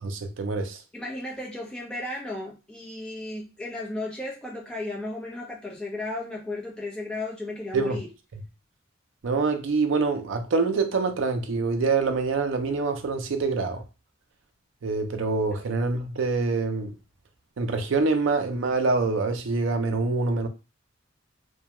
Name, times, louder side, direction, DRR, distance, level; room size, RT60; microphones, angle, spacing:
voice 1, 0.0-0.8 7.7-8.0 9.2-13.8 14.8-16.9 17.6-20.5, right 3 dB, 65° right, 0.4 m, -25 dB
voice 2, 0.9-8.1 15.5-15.6, left 2 dB, 5° left, 0.7 m, -34 dB
2.2 x 2.2 x 2.8 m
head